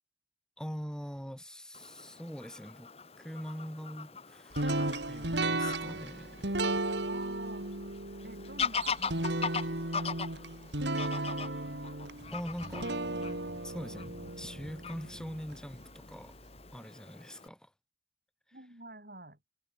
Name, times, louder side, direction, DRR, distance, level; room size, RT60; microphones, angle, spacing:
voice 1, 0.6-2.9 3.2-6.5 12.3-12.9 13.6-16.3 16.7-17.7 18.5-18.7, equal, 5° left, 4.6 m, -43 dB
Fowl / Bird vocalization bird call bird song, 1.7-17.5, left 5 dB, 30° left, 1.5 m, -41 dB
sound 1, 4.5-15.6, right 2 dB, 70° right, 3.4 m, -35 dB
voice 2, 7.1-7.7 8.2-10.4 18.5-19.4, right 2 dB, 50° right, 5.9 m, -48 dB
head